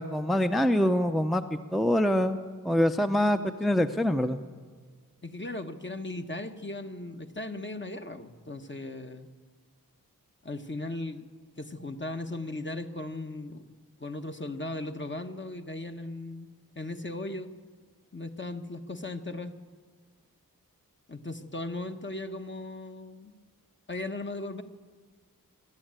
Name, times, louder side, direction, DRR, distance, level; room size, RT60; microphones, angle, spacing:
voice 1, 0.0-2.4 2.6-4.4, equal, ahead, 7 dB, 0.7 m, -25 dB
voice 2, 5.2-9.3 10.4-11.3 11.6-13.6 14.0-16.5 16.7-17.5 18.1-19.5 21.1-23.3 23.9-24.6, left 2 dB, 35° left, 6 dB, 1.3 m, -37 dB
24.5 x 12.0 x 8.9 m, 1.5 s
wide cardioid pair, 75°, 35 cm